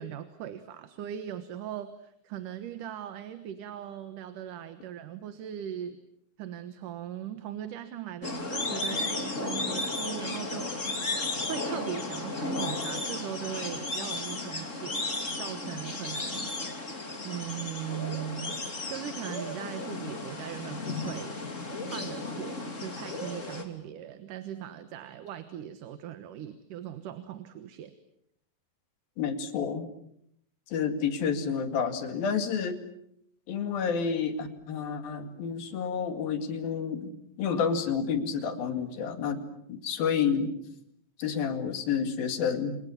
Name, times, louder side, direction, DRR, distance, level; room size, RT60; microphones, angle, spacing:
voice 1, 0.0-6.0 6.4-10.9 11.5-15.0 15.3-16.5 17.2-18.6 18.9-21.4 21.9-28.0, right 10 dB, 70° right, 10 dB, 2.8 m, -39 dB
sound 1, 8.2-23.6, left 2 dB, 20° left, 3.1 m, -34 dB
voice 2, 29.2-29.9 30.7-32.8 33.5-37.1 37.4-40.5 41.2-42.8, left 6 dB, 85° left, 8 dB, 4.1 m, -29 dB
29.5 x 27.0 x 7.2 m, 0.74 s
omnidirectional pair, 4.0 m